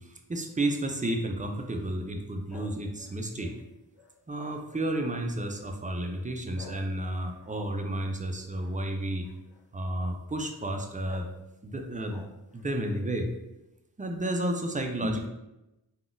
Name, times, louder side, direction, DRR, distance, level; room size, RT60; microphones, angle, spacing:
voice 1, 0.0-3.5 4.3-9.3 9.7-11.3 11.6-12.2 12.5-13.3 14.0-15.3, right 1 dB, 20° right, 3 dB, 0.3 m, -31 dB
sound 1, 2.5-5.1 5.5-5.9 6.5-8.8 9.2-9.7 10.6-10.7 11.0-11.4 11.8-12.7, left 2 dB, 85° left, 0.5 m, -53 dB
3.5 x 2.3 x 2.4 m, 0.93 s
wide cardioid pair, 65°, 40 cm